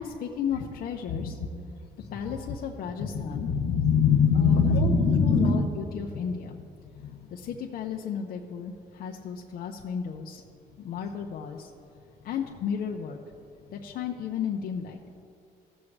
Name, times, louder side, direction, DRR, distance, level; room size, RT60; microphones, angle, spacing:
voice 1, 0.0-1.4 2.1-3.5 4.3-4.9 5.2-6.6 7.3-10.4 10.8-11.7 12.2-13.2 13.7-15.0, left 7 dB, 60° left, 0 dB, 0.8 m, -34 dB
voice 2, 3.0-5.7 7.0-7.2, left 5 dB, 80° left, 3 dB, 1.5 m, -23 dB
18.0 x 7.2 x 3.3 m, 2.5 s
cardioid pair, 110°, 17 cm